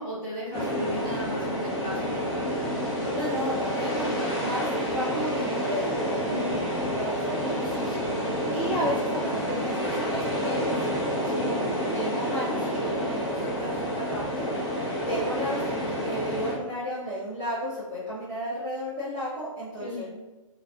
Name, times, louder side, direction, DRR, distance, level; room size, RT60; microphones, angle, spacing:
voice 1, 0.0-2.5 6.2-6.6 11.2-11.5 19.8-20.1, left 1 dB, 15° left, -13 dB, 1.0 m, -35 dB
sound 1, 0.5-16.5, equal, 45° left, 0.9 m, -29 dB
voice 2, 3.1-5.9 6.9-8.1 8.5-10.9 11.9-14.5 15.1-15.6 16.0-20.1, equal, 15° right, -14 dB, 0.4 m, -33 dB
2.4 x 2.3 x 2.3 m, 1.2 s
hypercardioid pair, 175°, 18 cm